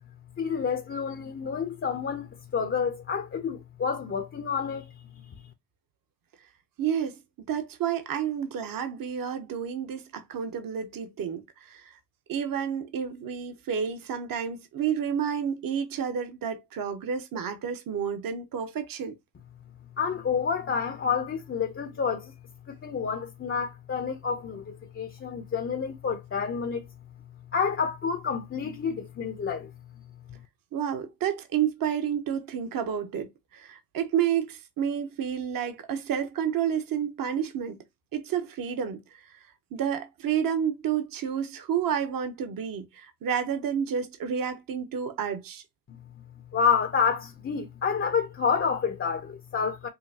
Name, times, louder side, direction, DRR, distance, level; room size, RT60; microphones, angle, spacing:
voice 1, 0.4-4.9 20.0-22.3 22.7-26.8 27.5-29.7 30.3-30.4 45.9-46.0 46.5-49.9, left 6 dB, 25° left, 0.7 m, -29 dB
voice 2, 6.8-7.2 7.5-12.0 12.3-19.1 30.7-37.8 38.1-39.3 39.7-45.6, right 8 dB, 45° right, 1.0 m, -30 dB
5.6 x 2.2 x 2.8 m
supercardioid pair, 80°, 49 cm